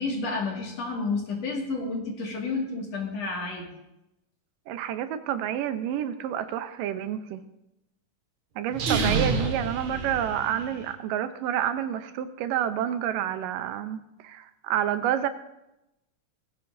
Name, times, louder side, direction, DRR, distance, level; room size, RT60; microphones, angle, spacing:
voice 1, 0.0-3.7, left 3 dB, 55° left, -1 dB, 3.1 m, -30 dB
voice 2, 4.7-7.4 8.6-15.3, right 10 dB, 90° right, 10 dB, 2.5 m, -29 dB
sound 1, 8.7-10.8, right 4 dB, 60° right, 2.7 m, -28 dB
19.0 x 15.0 x 2.7 m, 0.90 s
omnidirectional pair, 3.8 m